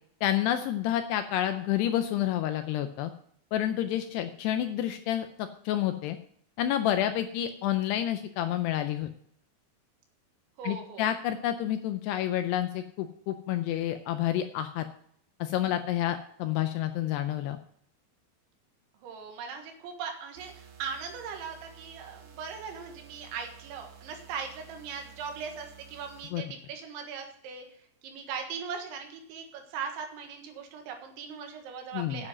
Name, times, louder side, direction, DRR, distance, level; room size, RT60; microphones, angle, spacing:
voice 1, 0.2-3.1 3.5-6.2 6.6-9.1 10.6-14.9 15.4-17.6 26.3-26.4 31.9-32.2, left 12 dB, 80° left, 8 dB, 2.5 m, -29 dB
voice 2, 10.6-11.1 19.0-27.7 28.0-32.3, right 6 dB, 85° right, 3 dB, 3.9 m, -39 dB
sound 1, 20.4-26.3, right 8 dB, 60° right, 2.2 m, -52 dB
9.8 x 7.7 x 6.0 m, 0.63 s
omnidirectional pair, 5.2 m